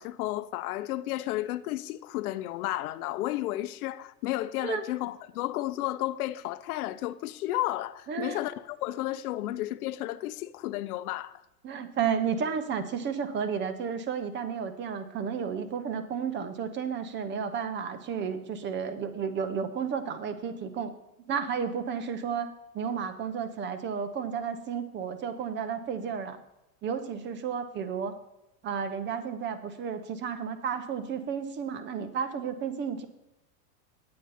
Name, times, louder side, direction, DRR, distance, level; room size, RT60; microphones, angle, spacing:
voice 1, 0.0-11.4, left 15 dB, 75° left, 0.6 m, -32 dB
voice 2, 8.1-8.4 11.6-20.9 21.3-26.4 26.8-28.1 28.6-33.1, right 7 dB, 25° right, 0.7 m, -32 dB
9.0 x 8.6 x 4.1 m
supercardioid pair, 135°, 45 cm